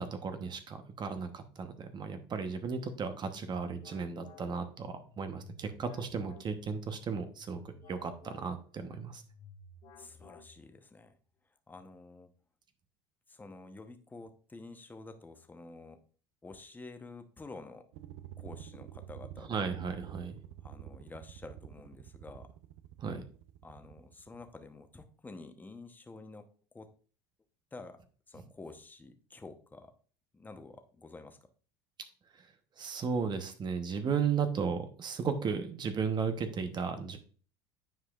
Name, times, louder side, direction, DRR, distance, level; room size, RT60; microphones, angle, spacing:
voice 1, 0.0-9.2 19.5-20.4 23.0-23.2 32.8-37.2, right 5 dB, 35° right, 8 dB, 1.0 m, -35 dB
sound 1, 2.9-10.9, left 3 dB, 50° left, 2.1 m, -55 dB
voice 2, 10.0-11.2 11.7-12.3 13.3-16.0 16.4-17.9 18.4-19.7 20.6-22.5 23.6-26.5 26.7-26.9 27.7-28.0 28.3-29.9 30.3-31.4, left 3 dB, 15° left, 7 dB, 1.0 m, -49 dB
sound 2, 17.9-24.6, right 12 dB, 70° right, 0.6 m, -49 dB
9.2 x 4.9 x 2.5 m, 0.41 s
supercardioid pair, 90°, 12 cm